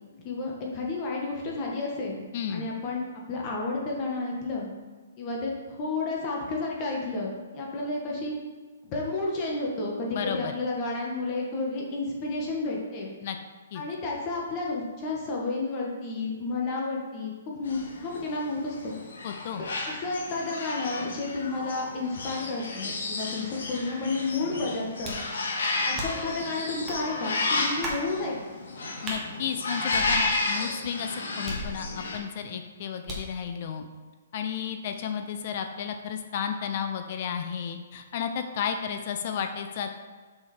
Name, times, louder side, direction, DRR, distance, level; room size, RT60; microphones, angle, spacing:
voice 1, 0.2-2.2 2.5-3.0 3.3-4.7 5.2-8.4 8.9-13.1 13.7-19.0 19.6-25.2 25.8-28.4, left 3 dB, 30° left, -2 dB, 1.6 m, -31 dB
voice 2, 2.3-2.7 10.1-10.5 13.2-13.4 13.7-13.8 19.2-19.6 29.0-33.8 34.3-40.0, left 7 dB, 45° left, 6 dB, 0.7 m, -33 dB
sound 1, 17.6-32.2, left 3 dB, 80° left, 2.1 m, -32 dB
sound 2, 25.0-25.3 26.0-26.3 26.9-27.0 27.8-28.1 29.0-29.2 29.9-30.6 31.5-32.1 33.1-33.4, equal, 15° right, 1.7 m, -36 dB
7.0 x 6.4 x 4.4 m, 1.4 s
hypercardioid pair, 155°, 0 cm